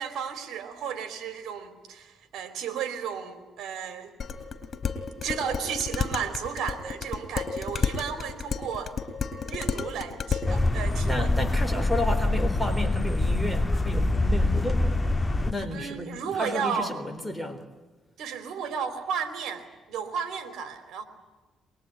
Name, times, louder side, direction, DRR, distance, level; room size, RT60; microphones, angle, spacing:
voice 1, 0.0-4.1 5.2-9.0 9.5-11.3 15.7-16.9 18.2-21.0, right 7 dB, 75° right, 10 dB, 3.3 m, -33 dB
Dishes pots and pans, 4.2-10.5, left 6 dB, 50° left, 4.2 m, -31 dB
sound 1, 10.5-15.5, left 2 dB, 15° left, 1.8 m, -25 dB
voice 2, 11.1-14.9 15.3-17.7, left 1 dB, ahead, 7 dB, 3.9 m, -32 dB
23.5 x 22.5 x 9.9 m, 1.3 s
cardioid pair, 90°, 0 cm